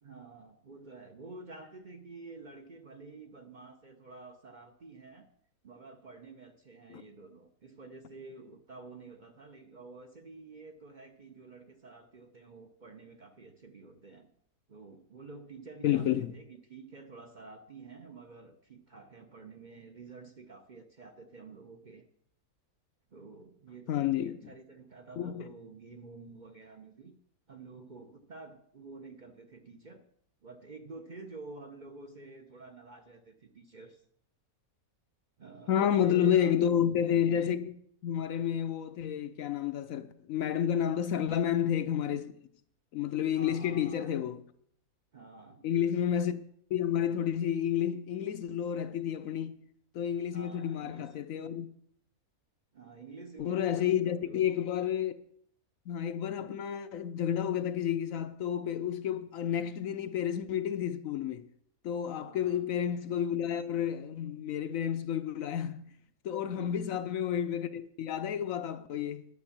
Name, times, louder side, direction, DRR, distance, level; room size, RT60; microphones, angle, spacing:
voice 1, 0.0-5.3 5.6-14.3 14.7-22.1 23.1-27.1 27.5-30.0 30.4-34.0 35.4-36.5 41.2-41.3 43.3-44.2 45.1-45.7 50.3-51.2 52.7-54.4 56.4-56.6 62.2-62.7 66.5-66.9, right 3 dB, 40° right, 0.8 m, -50 dB
voice 2, 15.8-16.3 23.9-24.4 25.2-25.4 35.7-37.8 38.0-42.3 42.9-44.4 45.6-46.4 46.7-49.6 49.9-51.7 53.4-55.2 55.9-61.5 61.8-66.0 66.2-69.3, left 9 dB, 65° left, 0.9 m, -30 dB
11.0 x 7.0 x 7.2 m
omnidirectional pair, 1.6 m